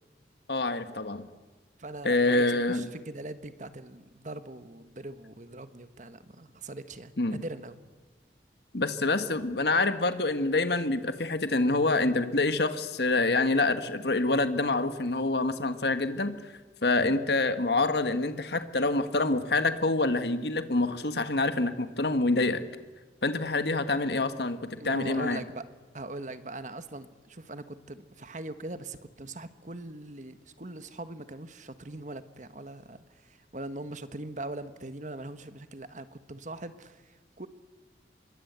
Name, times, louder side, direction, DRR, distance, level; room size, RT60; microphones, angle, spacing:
voice 1, 0.5-1.3 2.0-2.9 7.2-7.4 8.7-16.3 16.8-22.7 23.2-25.4, left 2 dB, 70° left, 10 dB, 1.6 m, -26 dB
voice 2, 1.8-7.7 24.8-25.6 25.9-37.5, right 2 dB, 45° right, 11 dB, 1.4 m, -41 dB
26.0 x 22.5 x 8.2 m, 1.3 s
head